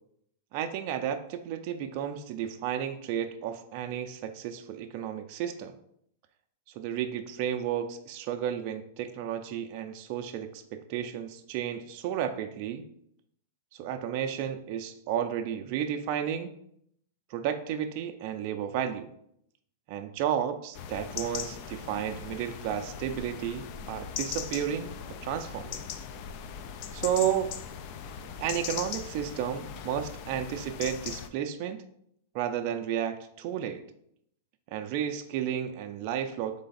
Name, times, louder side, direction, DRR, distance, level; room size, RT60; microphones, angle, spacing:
voice 1, 0.5-5.7 6.7-12.8 13.7-16.5 17.3-19.1 19.9-24.9 25.2-25.8 26.9-27.5 28.4-31.8 32.3-33.8 34.7-36.6, right 9 dB, 40° right, 6 dB, 0.4 m, -32 dB
sound 1, 20.7-31.3, left 8 dB, 40° left, 0.3 m, -39 dB
3.8 x 3.3 x 4.0 m, 0.72 s
supercardioid pair, 160°, 0 cm